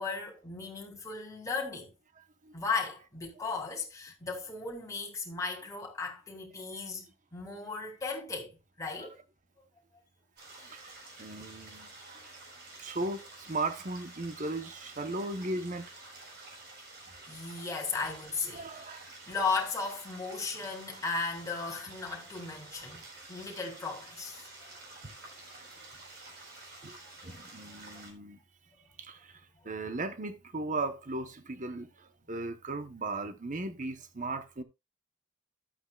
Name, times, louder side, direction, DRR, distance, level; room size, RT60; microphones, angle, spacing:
voice 1, 0.0-1.9 2.5-9.2 17.3-24.4 27.2-27.3 27.6-27.8, left 4 dB, 15° left, 3.1 m, -36 dB
sound 1, 10.4-28.1, right 2 dB, 60° right, 4.6 m, -50 dB
voice 2, 10.6-12.3 12.8-15.9 18.5-19.1 25.0-25.1 25.5-25.7 26.8-28.4 29.0-34.6, right 2 dB, 40° right, 1.1 m, -37 dB
13.0 x 8.6 x 2.4 m
head